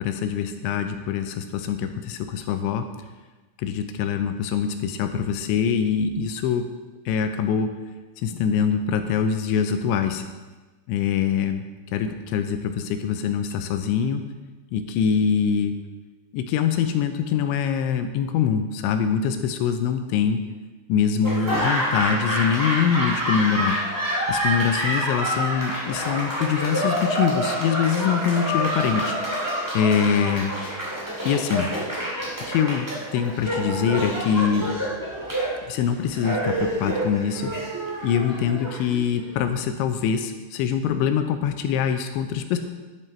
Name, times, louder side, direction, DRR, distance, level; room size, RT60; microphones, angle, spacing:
voice 1, 0.0-2.9 3.6-6.6 7.1-7.7 8.2-10.2 10.9-11.7 11.9-14.2 14.7-15.7 16.3-20.4 20.9-23.8 24.3-29.2 29.7-30.5 31.3-31.7 32.5-32.9 33.1-34.7 35.7-37.5 38.0-42.6, left 7 dB, 85° left, 7 dB, 2.9 m, -24 dB
Laughter / Applause, 21.2-39.3, right 1 dB, 25° right, 0.4 m, -27 dB
11.0 x 11.0 x 4.5 m, 1.2 s
omnidirectional pair, 5.5 m